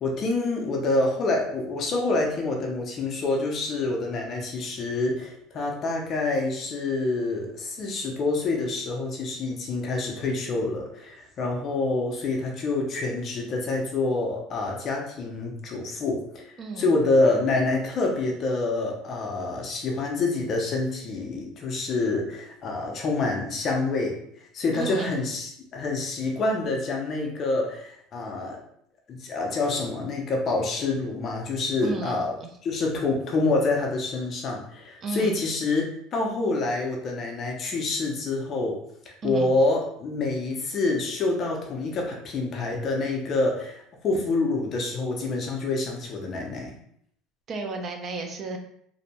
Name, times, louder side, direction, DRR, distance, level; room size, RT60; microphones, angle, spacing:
voice 1, 0.0-24.2 24.5-28.6 29.1-32.3 32.6-38.8 39.2-46.7, left 3 dB, 35° left, 1 dB, 0.4 m, -27 dB
voice 2, 16.6-16.9 24.7-25.1 31.8-32.5 35.0-35.4 39.2-39.5 47.5-48.6, right 3 dB, 30° right, 4 dB, 0.4 m, -33 dB
2.6 x 2.1 x 2.8 m, 0.70 s
cardioid pair, 155°, 0 cm